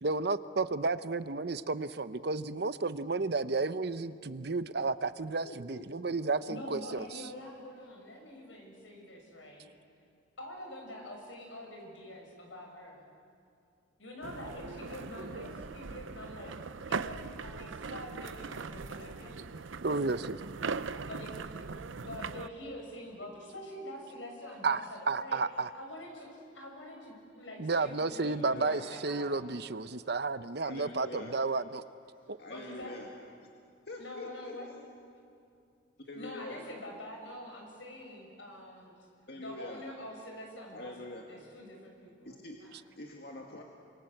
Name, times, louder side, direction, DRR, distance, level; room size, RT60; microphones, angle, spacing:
voice 1, 0.0-7.2 19.8-20.4 24.6-25.7 27.6-31.8 32.3-32.4, right 3 dB, 55° right, 13 dB, 0.8 m, -32 dB
voice 2, 5.4-6.4 28.2-28.9 30.6-31.4 32.4-33.1 33.9-34.6 36.1-36.6 39.3-39.8 40.7-41.2 42.3-42.6 43.0-43.6, left 2 dB, 55° left, 0 dB, 2.0 m, -45 dB
voice 3, 6.5-9.7 10.4-13.0 14.0-16.5 16.9-19.4 21.0-21.3 22.0-25.4 25.7-29.3 32.3-33.0 34.0-34.8 36.1-39.0 39.4-42.4 42.7-42.8, left 1 dB, 80° left, 1 dB, 6.9 m, -46 dB
sound 1, 14.2-22.5, right 4 dB, 85° right, 0.7 m, -40 dB
28.0 x 26.0 x 7.9 m, 2.4 s
head